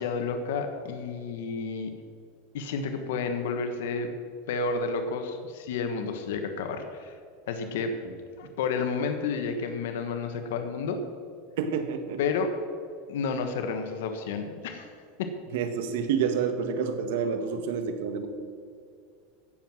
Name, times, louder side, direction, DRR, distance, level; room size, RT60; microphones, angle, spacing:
voice 1, 0.0-1.9 2.5-4.1 4.5-7.1 7.5-7.9 8.4-11.0 12.2-12.5 13.1-14.9 15.2-15.3, left 5 dB, 80° left, 6 dB, 1.4 m, -31 dB
voice 2, 11.6-12.2 15.5-18.3, right 6 dB, 75° right, 7 dB, 1.7 m, -28 dB
17.0 x 7.4 x 6.2 m, 2.2 s
supercardioid pair, 135°, 0 cm